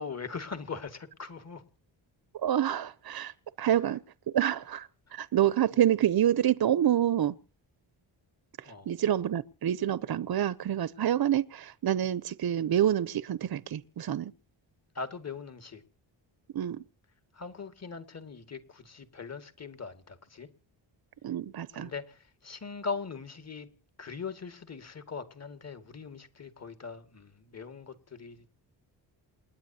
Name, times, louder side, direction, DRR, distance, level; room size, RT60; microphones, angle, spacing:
voice 1, 0.0-1.6 8.6-8.9 14.9-15.8 17.3-20.5 21.7-23.7 24.0-28.4, left 5 dB, 35° left, 2.1 m, -40 dB
voice 2, 2.4-4.0 4.3-7.4 8.6-14.3 16.5-16.8 21.2-21.9, right 11 dB, 50° right, 0.7 m, -27 dB
28.5 x 10.0 x 2.8 m
cardioid pair, 100°, 47 cm